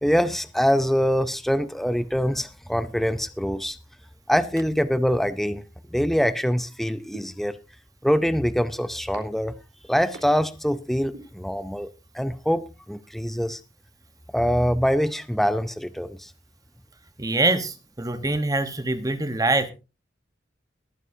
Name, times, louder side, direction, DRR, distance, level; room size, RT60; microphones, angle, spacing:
voice 1, 0.0-3.8 4.3-5.6 5.9-7.6 8.0-9.5 9.9-11.9 12.1-13.6 14.3-16.3, equal, ahead, 0.5 m, -24 dB
sound 1, 7.1-7.2 8.1-8.2 9.1-9.2 10.1-10.2 11.1-11.2, right 2 dB, 90° right, 3.7 m, -39 dB
voice 2, 17.2-19.7, right 2 dB, 20° right, 1.0 m, -24 dB
21.5 x 9.5 x 2.7 m
head